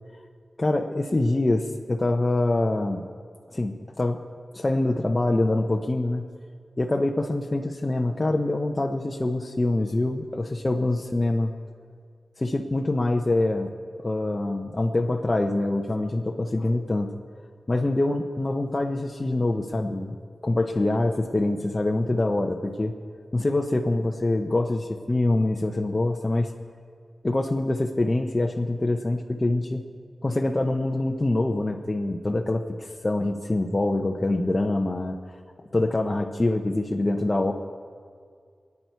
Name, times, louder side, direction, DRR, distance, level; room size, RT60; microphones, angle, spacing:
voice 1, 0.6-3.0 3.5-4.2 4.5-6.2 6.8-11.5 12.4-13.7 14.0-17.1 17.7-20.1 20.4-22.9 23.3-26.5 27.2-29.8 30.2-35.2 35.7-37.5, left 2 dB, 30° left, 2 dB, 0.8 m, -25 dB
28.5 x 9.7 x 4.6 m, 2.1 s
wide cardioid pair, 85°, 0 cm